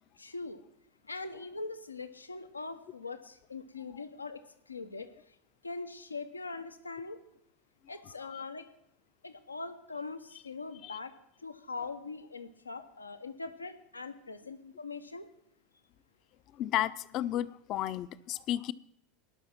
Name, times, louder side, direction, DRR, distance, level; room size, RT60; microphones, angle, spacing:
voice 1, 0.2-0.6 1.0-5.4 5.6-7.2 7.9-8.7 9.2-11.1 11.4-15.3, left 3 dB, 90° left, 10 dB, 0.9 m, -42 dB
voice 2, 16.6-18.7, left 13 dB, 45° left, 17 dB, 0.6 m, -33 dB
18.5 x 6.3 x 6.0 m, 0.77 s
figure-of-eight pair, 80°, 0 cm